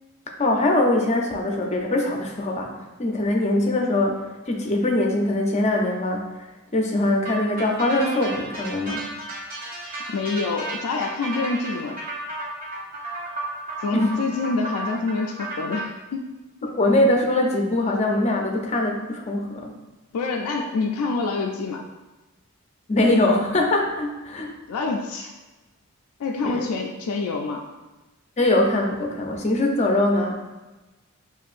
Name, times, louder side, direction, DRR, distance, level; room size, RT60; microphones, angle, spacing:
voice 1, 0.4-6.3 6.7-9.0 13.9-14.1 16.7-19.7 22.9-24.5 26.4-26.7 28.4-30.4, left 1 dB, 30° left, 1 dB, 0.5 m, -22 dB
sound 1, 7.2-15.8, right 2 dB, 40° right, 0.8 m, -33 dB
voice 2, 10.1-12.0 13.8-16.7 20.1-21.8 24.7-25.3 26.2-27.6, left 3 dB, 90° left, 1 dB, 0.4 m, -26 dB
6.9 x 2.5 x 2.5 m, 1.1 s
head